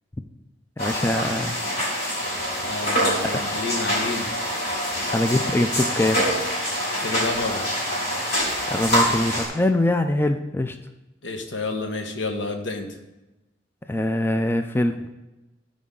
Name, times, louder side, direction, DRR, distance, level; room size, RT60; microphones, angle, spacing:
sound 1, 0.8-9.5, equal, 60° left, 3.6 m, -25 dB
voice 1, 0.8-1.6 5.1-6.3 8.7-10.8 13.9-15.1, left 1 dB, 10° left, 7 dB, 0.4 m, -23 dB
voice 2, 2.6-4.3 7.0-7.7 11.2-13.0, left 3 dB, 80° left, 5 dB, 1.1 m, -29 dB
15.0 x 5.1 x 3.8 m, 1.0 s
head